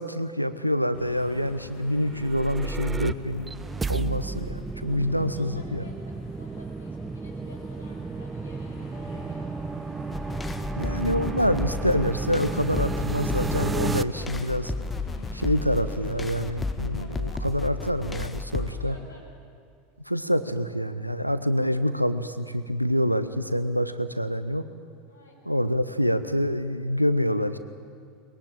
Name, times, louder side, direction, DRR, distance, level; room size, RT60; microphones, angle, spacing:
voice 1, 0.0-3.5 3.9-5.8 10.8-14.7 15.3-18.9 20.1-24.6 25.5-27.6, equal, 90° right, 12 dB, 0.9 m, -26 dB
sound 1, 0.9-18.9, left 3 dB, 40° left, 6.9 m, -46 dB
sound 2, 2.0-14.0, right 4 dB, 15° right, 0.6 m, -33 dB
voice 2, 4.9-9.6 17.0-17.6 18.7-19.4 25.1-25.6, left 1 dB, 85° left, -2 dB, 5.8 m, -52 dB
sound 3, 10.1-18.7, left 3 dB, 15° left, 1.3 m, -33 dB
22.5 x 21.5 x 8.9 m, 2.3 s
figure-of-eight pair, 80°, 0 cm